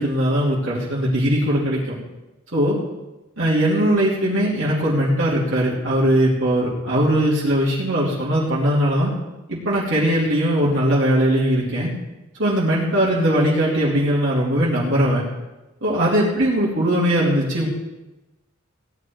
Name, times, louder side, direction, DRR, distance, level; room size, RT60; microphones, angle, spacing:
voice 1, 0.0-2.0 2.5-2.8 3.4-9.1 9.5-11.9 12.4-15.2 15.8-17.7, equal, 65° right, -7 dB, 3.3 m, -20 dB
17.5 x 9.7 x 4.8 m, 1.0 s
head